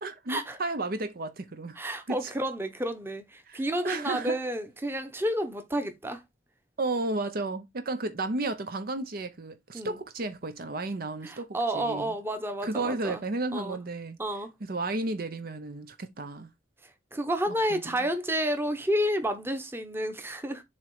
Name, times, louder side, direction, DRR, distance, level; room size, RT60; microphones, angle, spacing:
voice 1, 0.0-1.8 2.1-2.3 3.5-3.6 3.8-4.4 6.8-11.5 11.7-12.1 12.6-14.2 14.7-16.5 17.7-17.9, right 2 dB, 55° right, 0.7 m, -33 dB
voice 2, 1.7-6.2 9.7-10.0 11.2-13.2 13.5-13.8 14.2-14.5 16.8-20.6, right 1 dB, 15° right, 1.0 m, -30 dB
7.3 x 3.1 x 4.7 m
head